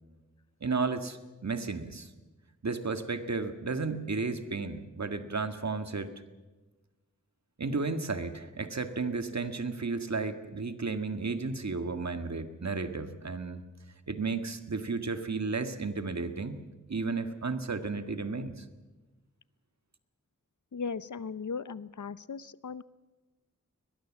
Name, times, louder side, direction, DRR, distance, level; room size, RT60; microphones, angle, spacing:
voice 1, 0.6-2.1 2.6-6.1 7.6-13.6 14.1-16.6 16.9-18.6, right 4 dB, 60° right, 9 dB, 1.8 m, -33 dB
voice 2, 20.7-22.8, left 5 dB, 70° left, 17 dB, 0.7 m, -37 dB
21.5 x 21.0 x 7.4 m, 1.2 s
wide cardioid pair, 50°, 30 cm